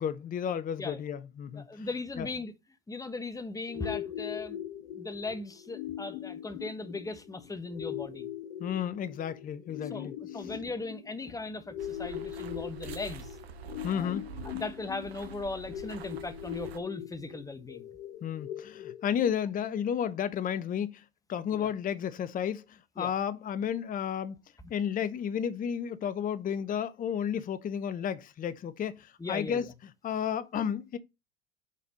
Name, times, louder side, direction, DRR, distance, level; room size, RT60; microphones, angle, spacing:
voice 1, 0.0-1.9 2.2-2.3 8.6-10.1 13.8-14.2 18.2-21.0 21.3-24.4 24.7-29.7 30.0-31.0, left 8 dB, 25° left, 0.7 m, -32 dB
voice 2, 1.5-2.5 2.9-4.6 4.9-8.3 9.9-13.3 13.9-14.1 14.5-17.9 21.5-21.7 23.0-23.1 29.2-29.7, left 3 dB, 10° left, 1.1 m, -38 dB
sound 1, 3.7-19.7, left 11 dB, 70° left, 1.1 m, -41 dB
sound 2, 11.8-16.8, right 6 dB, 85° right, 1.1 m, -46 dB
7.2 x 4.2 x 5.2 m
hypercardioid pair, 85°, 31 cm